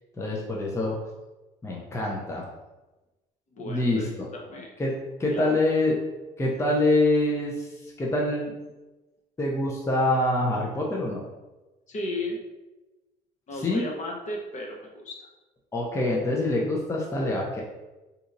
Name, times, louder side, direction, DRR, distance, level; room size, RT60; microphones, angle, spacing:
voice 1, 0.2-1.0 1.6-2.5 3.6-4.3 4.8-6.0 6.4-8.5 9.4-11.2 13.5-13.8 15.7-17.6, left 1 dB, 15° left, -2 dB, 0.5 m, -25 dB
voice 2, 3.5-4.7 5.3-5.6 11.9-12.4 13.5-15.2, left 1 dB, 45° left, 0 dB, 0.8 m, -35 dB
4.0 x 2.8 x 2.5 m, 1.1 s
cardioid pair, 110°, 17 cm